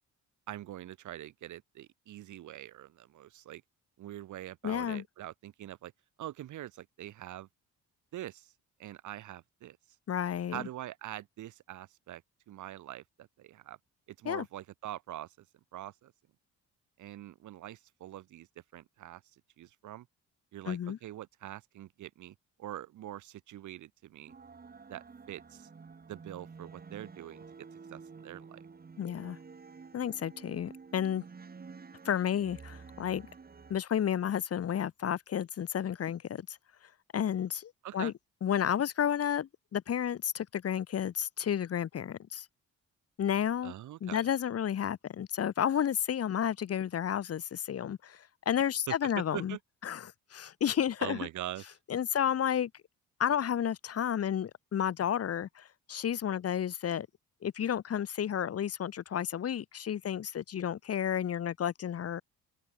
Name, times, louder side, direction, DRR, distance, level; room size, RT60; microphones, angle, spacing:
voice 1, 0.5-3.6 4.0-5.9 6.2-7.5 8.1-8.5 8.8-9.8 10.5-12.2 12.5-13.8 14.2-15.5 15.7-16.1 17.0-18.5 18.7-19.2 19.6-20.1 20.5-24.3 24.9-25.7 26.1-28.7 37.8-38.1 43.6-44.2 48.9-49.6 51.0-51.8, right 13 dB, 75° right, 1.9 m, -44 dB
voice 2, 4.6-5.0 10.1-10.6 14.2-14.4 20.6-21.0 29.0-29.4 29.9-31.2 32.0-33.3 33.7-36.6 37.1-38.1 38.4-42.4 43.2-43.7 44.0-49.6 49.8-51.2 51.9-52.7 53.2-57.1 57.4-62.2, left 9 dB, 50° left, 1.6 m, -31 dB
sound 1, 24.3-33.8, right 5 dB, 30° right, 2.7 m, -50 dB
open air
cardioid pair, 90°, 30 cm